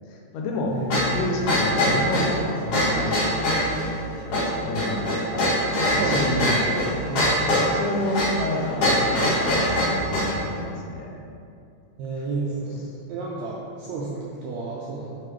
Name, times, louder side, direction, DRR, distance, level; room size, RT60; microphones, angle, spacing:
voice 1, 0.1-0.7 1.1-3.2 4.2-5.5 5.9-7.0 7.6-11.2, left 1 dB, 90° left, 1 dB, 2.3 m, -29 dB
voice 2, 0.7-1.2 6.0-6.6 7.1-7.4 12.0-15.2, right 3 dB, 85° right, -4 dB, 1.5 m, -31 dB
sound 1, 0.9-10.4, left 1 dB, 55° left, 2.4 m, -23 dB
5.9 x 4.9 x 3.2 m, 2.5 s
omnidirectional pair, 3.7 m